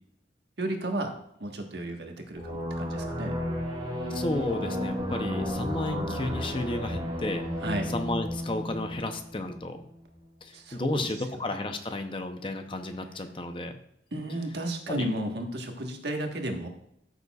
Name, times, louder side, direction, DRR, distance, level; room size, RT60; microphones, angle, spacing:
voice 1, 0.6-1.1 1.4-3.3 5.9-6.3 7.6-7.9 10.5-11.1 14.1-16.7, right 1 dB, 70° right, 3 dB, 1.3 m, -33 dB
sound 1, 2.4-9.7, equal, 25° right, 2.4 m, -33 dB
voice 2, 4.1-7.5 7.9-9.9 10.4-13.7 14.9-15.1, left 2 dB, 30° left, 7 dB, 0.6 m, -33 dB
13.0 x 6.8 x 2.3 m, 0.74 s
head